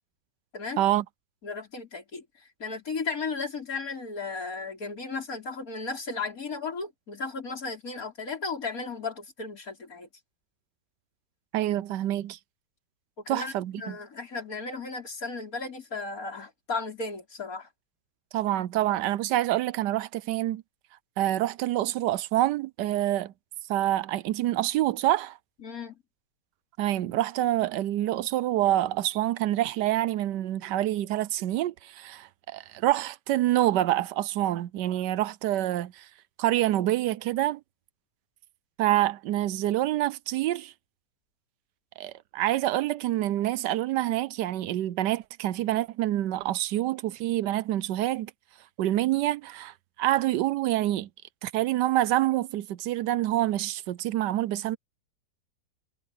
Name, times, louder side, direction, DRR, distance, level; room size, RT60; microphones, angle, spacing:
voice 1, 1.4-2.2 2.6-10.1 13.2-17.7 25.6-26.0, left 4 dB, 45° left, 5.4 m, -35 dB
voice 2, 11.5-12.4 13.3-14.0 18.3-20.6 21.2-23.3 23.7-25.4 26.8-36.1 36.4-37.6 38.8-40.7 42.0-48.3 48.8-51.1 51.4-54.8, right 14 dB, 75° right, 1.1 m, -27 dB
omnidirectional pair, 2.1 m